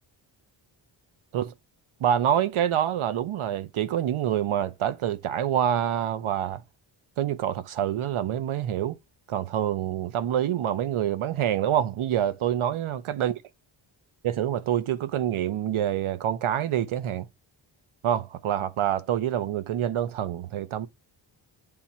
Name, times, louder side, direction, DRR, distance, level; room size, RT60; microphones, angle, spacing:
voice 1, 2.0-6.6 7.2-9.0 9.3-13.3 14.2-17.3 18.0-20.9, right 10 dB, 80° right, 0.8 m, -26 dB
8.7 x 3.5 x 4.2 m
wide cardioid pair, 125°, 48 cm